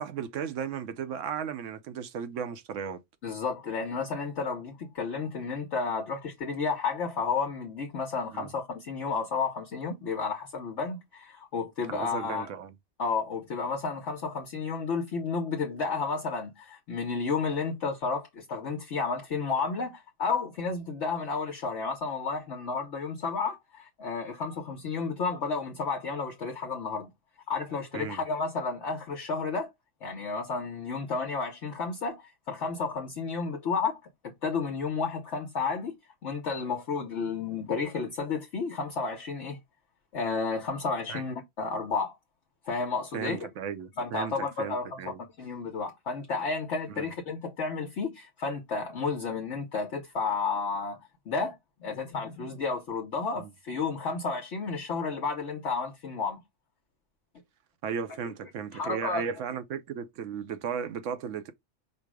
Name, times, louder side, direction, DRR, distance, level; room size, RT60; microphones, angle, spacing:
voice 1, 0.0-3.0 8.3-8.5 11.9-12.7 27.9-28.2 41.1-41.2 43.1-45.2 46.9-47.1 53.4-53.5 57.8-61.5, right 7 dB, 70° right, 0.9 m, -35 dB
voice 2, 3.2-12.5 13.0-27.1 27.5-29.7 30.0-34.0 34.4-35.9 36.2-39.6 40.1-42.1 42.6-43.5 44.0-51.0 51.3-56.4 58.2-58.3 58.7-59.2, left 4 dB, 60° left, 1.1 m, -32 dB
5.2 x 2.0 x 4.7 m
omnidirectional pair, 1.4 m